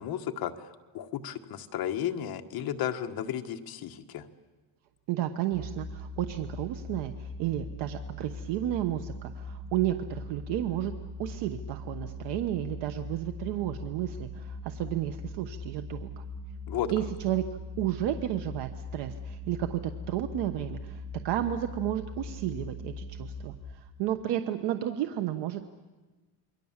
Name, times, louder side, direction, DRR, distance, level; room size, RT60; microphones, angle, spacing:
voice 1, 0.0-4.3 16.7-16.9, left 10 dB, 55° left, 6 dB, 1.5 m, -34 dB
voice 2, 5.1-10.9 11.2-16.2 16.9-17.5 17.8-25.6, right 12 dB, 90° right, 8 dB, 1.2 m, -32 dB
sound 1, 5.5-23.5, left 1 dB, 75° right, 4.6 m, -41 dB
28.0 x 22.5 x 7.4 m, 1.2 s
cardioid pair, 155°, 41 cm